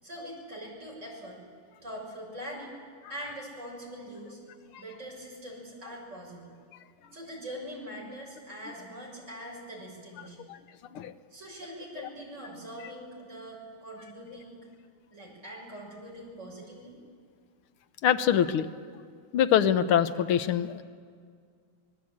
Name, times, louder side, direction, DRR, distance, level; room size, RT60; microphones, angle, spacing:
voice 1, 0.0-1.4 1.8-2.8 3.1-4.4 4.8-6.5 7.1-10.5 11.3-14.7 15.1-16.9, equal, 35° right, -2 dB, 6.9 m, -43 dB
voice 2, 18.0-18.7 19.3-20.8, left 9 dB, 90° left, 11 dB, 1.8 m, -24 dB
25.5 x 21.0 x 8.6 m, 2.1 s
omnidirectional pair, 2.3 m